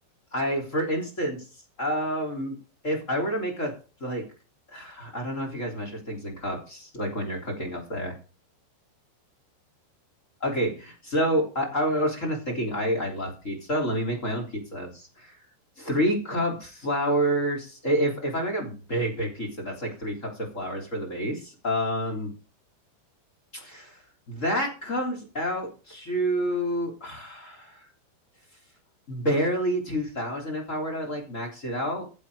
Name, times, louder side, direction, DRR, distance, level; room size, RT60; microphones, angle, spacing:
voice 1, 0.3-1.5 1.8-2.6 2.8-3.7 4.0-4.2 4.7-8.1 10.4-15.3 15.8-22.3 23.5-24.0 24.3-27.8 29.1-32.0, equal, 20° left, 1 dB, 3.0 m, -28 dB
14.5 x 7.5 x 5.0 m, 0.34 s
omnidirectional pair, 5.4 m